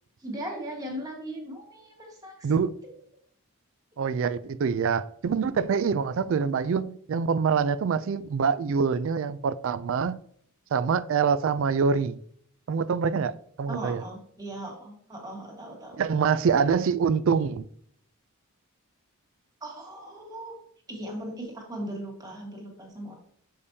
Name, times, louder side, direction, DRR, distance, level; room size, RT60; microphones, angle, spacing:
voice 1, 0.2-2.5 13.7-16.0 19.6-20.5 20.9-23.1, right 1 dB, 15° right, 1.5 m, -38 dB
voice 2, 2.4-2.8 4.0-10.2 10.7-12.2 12.7-14.0 16.0-17.7, right 6 dB, 60° right, 0.3 m, -25 dB
6.8 x 5.1 x 2.7 m
head